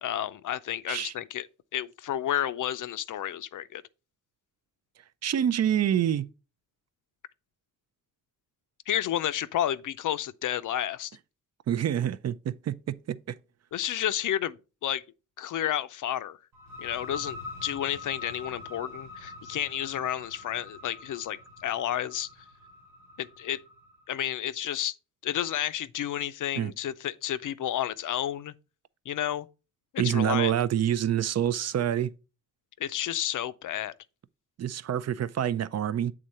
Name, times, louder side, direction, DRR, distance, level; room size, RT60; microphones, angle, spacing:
voice 1, 0.0-1.5 1.7-3.8 8.9-11.1 13.7-15.0 15.4-16.4 16.8-22.3 23.2-23.6 24.1-24.9 25.2-28.5 29.1-29.5 29.9-30.5 32.8-33.9, left 11 dB, 75° left, 0.5 m, -31 dB
voice 2, 5.2-6.3 11.7-13.2 26.6-26.7 30.0-32.1 34.6-36.1, right 10 dB, 55° right, 0.4 m, -27 dB
sound 1, 16.5-24.0, left 3 dB, 80° right, 1.3 m, -44 dB
7.8 x 3.7 x 4.2 m
wide cardioid pair, 115°, 31 cm